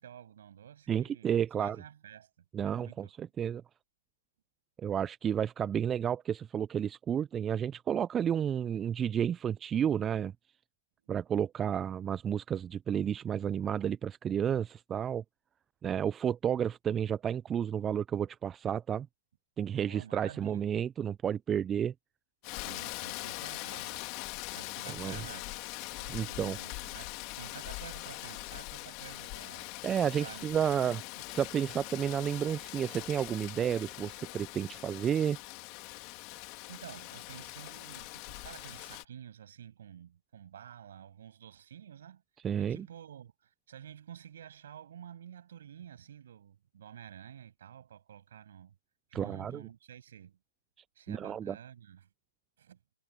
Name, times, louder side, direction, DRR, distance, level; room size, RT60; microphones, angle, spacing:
voice 1, 0.0-2.3 2.6-3.3 19.8-20.6 22.5-24.1 24.5-25.5 26.0-29.8 30.2-31.0 36.4-42.2 42.6-48.8 49.1-50.4 51.0-52.1 52.6-52.8, right 9 dB, 55° right, 7.3 m, -50 dB
voice 2, 0.9-1.8 2.5-3.6 4.8-10.3 11.1-15.2 15.8-19.1 19.6-21.9 25.0-25.2 26.1-26.6 29.8-31.0 31.3-35.4 42.4-42.9 49.1-49.6 51.1-51.5, right 8 dB, 15° right, 0.5 m, -31 dB
Rain, 22.4-39.0, left 30 dB, 30° left, 3.2 m, -42 dB
figure-of-eight pair, 130°, 0 cm